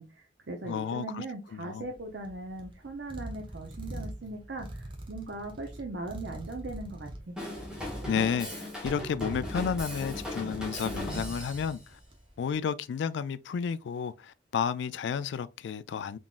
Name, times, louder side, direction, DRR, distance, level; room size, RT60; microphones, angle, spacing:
voice 1, 0.0-7.3, right 2 dB, 65° right, 0.7 m, -39 dB
voice 2, 0.6-1.2 1.5-1.9 8.1-12.0 12.4-16.2, left 6 dB, 70° left, 0.3 m, -32 dB
sound 1, 1.8-12.4, right 1 dB, 25° right, 0.8 m, -44 dB
Drum kit / Drum, 7.4-11.8, left 1 dB, 5° right, 1.5 m, -38 dB
3.8 x 3.6 x 2.4 m
head